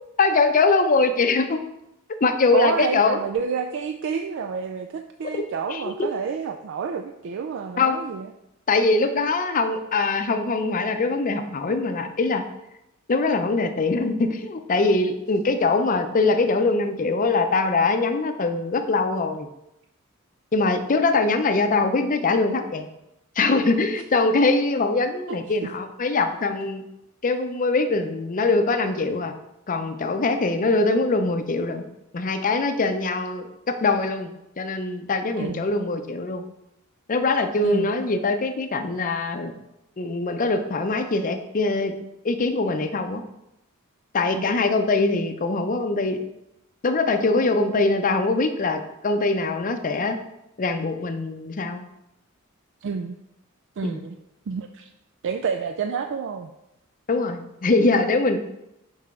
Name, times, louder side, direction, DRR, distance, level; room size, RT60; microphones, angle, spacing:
voice 1, 0.2-1.6 2.2-3.2 5.7-6.1 7.8-8.0 8.7-12.4 13.1-19.5 20.5-22.9 23.4-26.8 27.2-29.3 29.7-31.8 32.1-36.4 37.1-39.5 40.0-41.9 42.2-43.2 44.1-46.2 46.8-50.2 50.6-51.8 53.8-54.0 57.1-58.4, left 3 dB, 40° left, 7 dB, 0.5 m, -22 dB
voice 2, 2.5-8.3 23.9-24.0 25.3-25.7 35.4-35.6 37.6-37.9 44.3-44.5 52.8-53.2 53.8-54.2 54.5-54.9 55.2-56.5, right 6 dB, 60° right, 6 dB, 0.3 m, -29 dB
5.8 x 5.4 x 3.6 m, 0.87 s
head